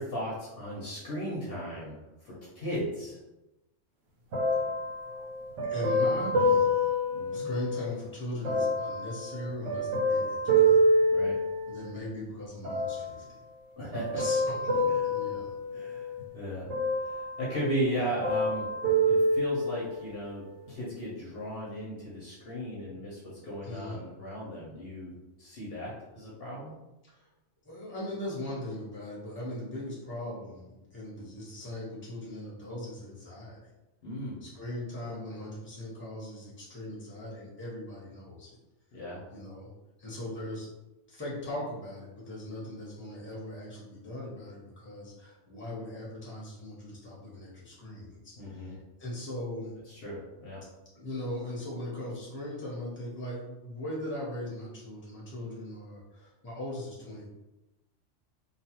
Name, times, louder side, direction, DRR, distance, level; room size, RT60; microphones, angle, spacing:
voice 1, 0.0-3.2 7.1-7.5 11.1-11.4 13.8-14.2 15.7-16.7 17.0-18.7 19.1-25.1 25.4-26.8 31.2-31.3 34.0-34.4 38.9-39.2 48.4-48.8 49.9-50.6, equal, 55° left, -6 dB, 0.9 m, -36 dB
sound 1, 4.3-7.9 8.4-12.0 12.6-13.3 13.9-16.2 16.7-17.7 18.0-20.0 20.7-20.8, equal, 85° right, 1.0 m, -27 dB
voice 2, 5.6-6.9 7.3-10.9 11.7-13.4 14.1-15.5 23.6-24.0 27.1-27.2 27.6-33.6 34.4-38.6 39.3-39.7 40.0-40.7 41.1-49.7 50.9-57.3, left 1 dB, 10° left, -6 dB, 0.8 m, -39 dB
2.6 x 2.3 x 2.8 m, 0.99 s
omnidirectional pair, 1.3 m